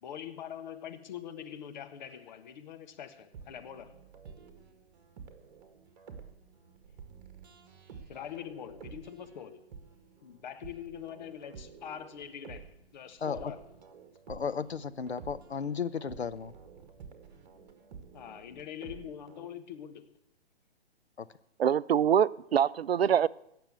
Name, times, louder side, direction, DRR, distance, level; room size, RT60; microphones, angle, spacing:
voice 1, 0.0-4.0 8.1-9.7 10.2-13.7 18.1-20.1, left 9 dB, 45° left, 1.3 m, -43 dB
sound 1, 3.2-19.5, right 6 dB, 40° right, 2.0 m, -51 dB
voice 2, 13.2-13.5 14.3-16.5 21.2-21.3, left 6 dB, 75° left, 0.8 m, -34 dB
voice 3, 21.6-23.3, right 8 dB, 65° right, 0.5 m, -24 dB
17.0 x 6.8 x 8.1 m
figure-of-eight pair, 130°, 32 cm